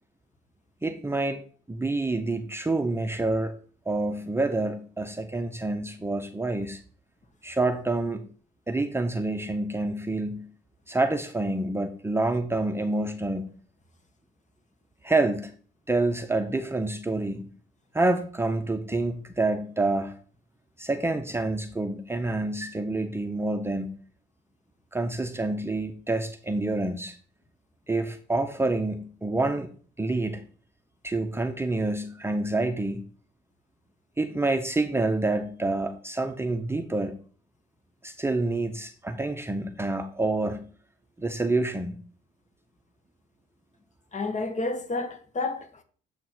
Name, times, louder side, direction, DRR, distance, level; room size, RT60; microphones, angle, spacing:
voice 1, 0.8-1.4 1.7-3.6 3.9-6.8 7.4-8.3 8.7-10.5 10.9-13.5 15.0-15.5 15.9-17.5 17.9-20.1 20.8-23.9 24.9-27.2 27.9-29.7 30.0-30.4 31.0-33.0 34.2-37.2 38.0-40.7 41.2-42.0, right 2 dB, 10° right, 0.8 m, -27 dB
voice 2, 44.1-45.8, left 3 dB, 35° left, 1.4 m, -30 dB
7.4 x 4.2 x 6.0 m
cardioid pair, 90°, 20 cm